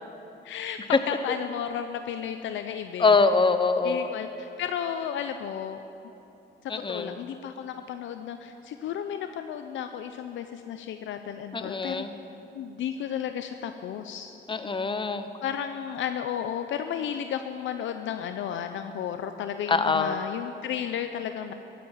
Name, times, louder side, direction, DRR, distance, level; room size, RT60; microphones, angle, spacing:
voice 1, 0.4-3.2 3.8-5.8 6.6-12.1 12.5-14.4 15.4-21.5, left 9 dB, 75° left, 8 dB, 0.7 m, -33 dB
voice 2, 3.0-4.1 6.7-7.2 11.5-12.1 14.5-15.3 19.7-20.2, left 4 dB, 25° left, 10 dB, 1.0 m, -24 dB
14.5 x 10.5 x 9.1 m, 2.9 s
cardioid pair, 90°, 20 cm